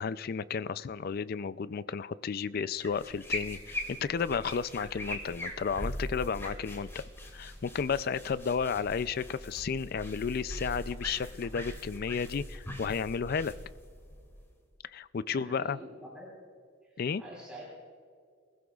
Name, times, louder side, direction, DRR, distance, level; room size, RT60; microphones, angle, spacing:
voice 1, 0.0-7.0 7.3-13.5 14.8-15.8 17.0-17.2, left 6 dB, 45° left, 16 dB, 0.4 m, -33 dB
sound 1, 2.7-14.7, left 1 dB, 15° left, 2.3 m, -41 dB
voice 2, 15.3-16.3 16.8-17.6, equal, 5° right, -6 dB, 3.2 m, -47 dB
23.5 x 15.5 x 2.4 m, 2.2 s
head